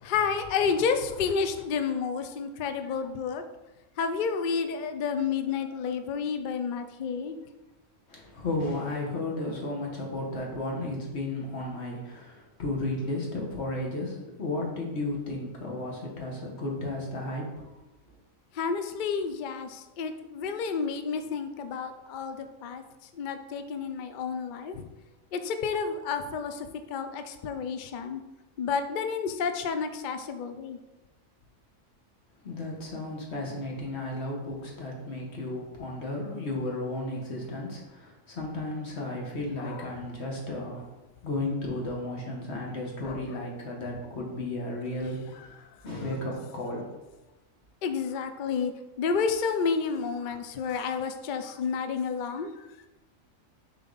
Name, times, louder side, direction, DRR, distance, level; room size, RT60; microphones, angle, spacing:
voice 1, 0.0-3.4 4.0-7.4 18.6-22.8 23.2-24.8 25.3-28.2 28.6-30.8 39.6-39.8 43.0-43.2 47.8-48.7 49.0-52.5, left 6 dB, 70° left, 8 dB, 0.4 m, -30 dB
voice 2, 8.1-17.5 32.4-40.8 41.2-45.5 45.8-46.8, left 2 dB, 55° left, -1 dB, 1.6 m, -34 dB
6.8 x 4.2 x 3.9 m, 1.0 s
omnidirectional pair, 1.4 m